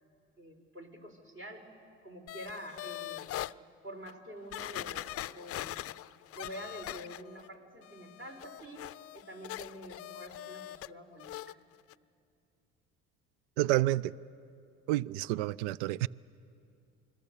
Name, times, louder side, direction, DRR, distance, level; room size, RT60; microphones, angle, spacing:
voice 1, 0.4-1.7 2.0-3.3 3.8-5.8 6.3-11.6, equal, 40° right, 5.0 m, -47 dB
sound 1, 2.3-3.5 4.1-4.2 4.5-7.5 7.8-10.9 11.2-11.5 11.9-12.0, left 14 dB, 45° left, 0.5 m, -42 dB
voice 2, 13.6-14.1 14.9-16.1, right 16 dB, 80° right, 0.5 m, -29 dB
28.0 x 21.5 x 6.9 m
hypercardioid pair, 65°, 34 cm